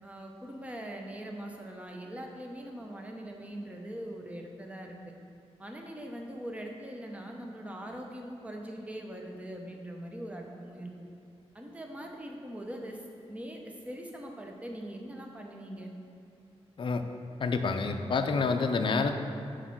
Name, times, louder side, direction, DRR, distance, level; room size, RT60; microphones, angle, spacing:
voice 1, 0.0-5.1 5.6-10.9 11.5-13.0 13.3-15.9, right 1 dB, 10° right, 1 dB, 0.7 m, -42 dB
voice 2, 17.4-19.2, left 4 dB, 50° left, 6 dB, 0.5 m, -28 dB
6.4 x 4.6 x 6.0 m, 2.6 s
wide cardioid pair, 145°, 11 cm